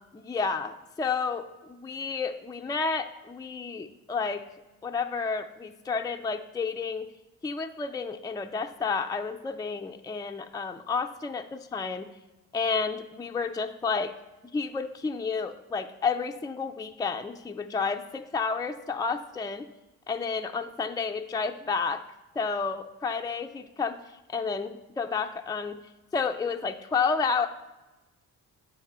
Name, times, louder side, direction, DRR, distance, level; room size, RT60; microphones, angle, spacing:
voice 1, 0.1-4.4 4.8-7.1 7.4-12.1 12.5-14.1 14.5-19.7 20.1-22.0 22.4-24.0 24.3-25.8 26.1-27.5, left 5 dB, 10° left, 5 dB, 0.4 m, -31 dB
7.9 x 5.5 x 3.6 m, 1.1 s
cardioid pair, 65°, 37 cm